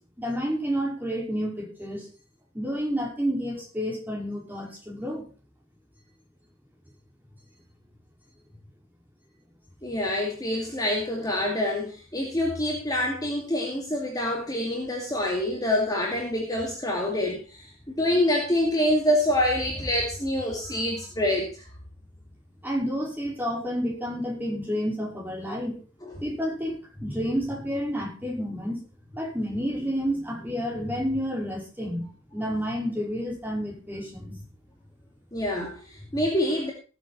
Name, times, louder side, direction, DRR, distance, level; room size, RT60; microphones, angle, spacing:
voice 1, 0.2-2.1 2.5-5.2 22.6-25.8 26.2-28.8 29.1-34.4 36.1-36.2, equal, 10° right, -2 dB, 5.2 m, -30 dB
voice 2, 9.8-21.7 26.0-26.2 35.3-36.7, left 1 dB, 15° left, 0 dB, 2.5 m, -26 dB
18.5 x 8.0 x 4.3 m, 0.37 s
head